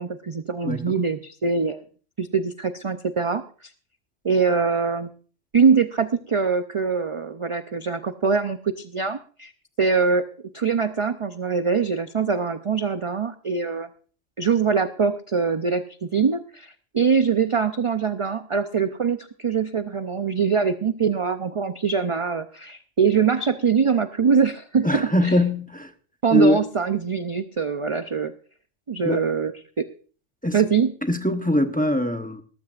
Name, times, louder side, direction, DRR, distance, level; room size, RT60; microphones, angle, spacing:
voice 1, 0.0-1.8 2.2-3.7 4.2-5.1 5.5-9.5 9.8-10.2 10.5-13.9 14.4-25.4 26.2-28.3 28.9-29.9 30.5-30.9, right 5 dB, 40° right, 0.4 m, -23 dB
voice 2, 0.6-0.9 24.8-25.9 26.3-26.6 29.0-29.2 30.4-30.6 31.1-32.4, left 1 dB, 10° left, 0.8 m, -22 dB
18.5 x 14.0 x 2.4 m
omnidirectional pair, 1.2 m